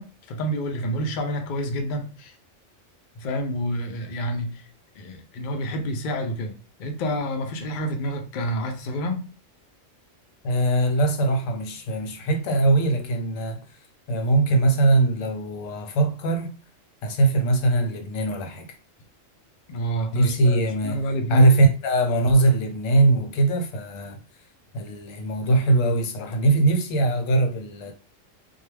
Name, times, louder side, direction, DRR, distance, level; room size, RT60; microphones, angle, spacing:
voice 1, 0.0-2.3 3.2-4.6 5.0-9.3 19.7-20.6 20.8-21.5, equal, 60° left, 0.5 m, -29 dB
voice 2, 10.4-13.6 14.1-16.5 17.0-18.7 20.1-21.0 21.3-24.2 24.7-27.9, right 2 dB, 80° left, 1.0 m, -21 dB
2.2 x 2.2 x 3.2 m
omnidirectional pair, 1.4 m